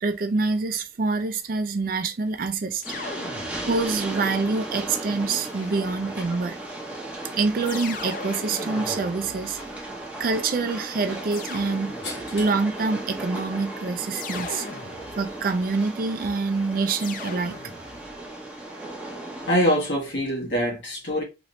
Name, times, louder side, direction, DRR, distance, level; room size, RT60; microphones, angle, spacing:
voice 1, 0.0-2.8 3.7-6.6 7.3-9.6 10.2-11.9 12.3-14.7 15.2-17.6, right 4 dB, 50° right, 0.4 m, -26 dB
sound 1, 2.8-4.0 5.5-6.4 7.6-10.0 11.3-12.4 14.1-15.5 17.0-18.2, left 4 dB, 45° left, 0.5 m, -39 dB
Train, 2.8-19.8, right 2 dB, 5° right, 0.7 m, -36 dB
voice 2, 12.0-12.5 19.5-21.2, equal, 75° left, 1.2 m, -25 dB
3.1 x 3.0 x 2.5 m
head